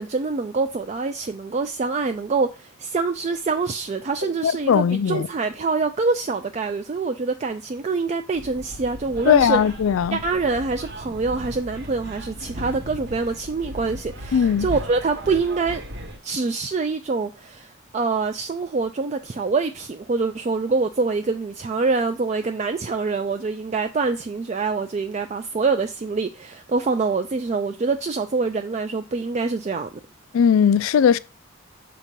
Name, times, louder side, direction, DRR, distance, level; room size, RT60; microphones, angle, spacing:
voice 1, 0.0-9.6 10.1-15.8 16.2-29.9, right 4 dB, 35° right, 0.3 m, -25 dB
voice 2, 4.4-5.3 9.3-10.2 14.3-14.7 30.3-31.2, left 7 dB, 80° left, 0.3 m, -18 dB
sound 1, 8.3-16.2, equal, 55° right, 1.0 m, -37 dB
7.2 x 2.9 x 5.2 m
head